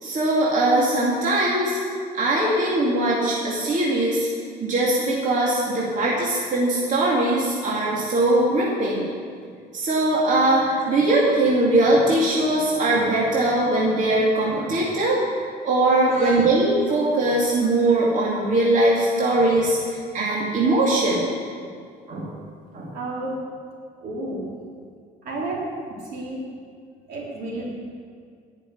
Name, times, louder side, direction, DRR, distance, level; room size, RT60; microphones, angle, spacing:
voice 1, 0.0-1.8 2.1-4.3 4.6-9.1 9.7-15.2 15.6-21.3 22.1-22.3 22.7-22.9, right 2 dB, 50° right, -5 dB, 2.6 m, -21 dB
voice 2, 16.1-16.4 19.2-19.3 22.9-23.4 24.0-24.4 25.3-25.6 26.1-26.4 27.1-27.7, right 2 dB, 70° right, -3 dB, 3.4 m, -31 dB
11.0 x 6.6 x 9.4 m, 2.1 s
cardioid pair, 110°, 17 cm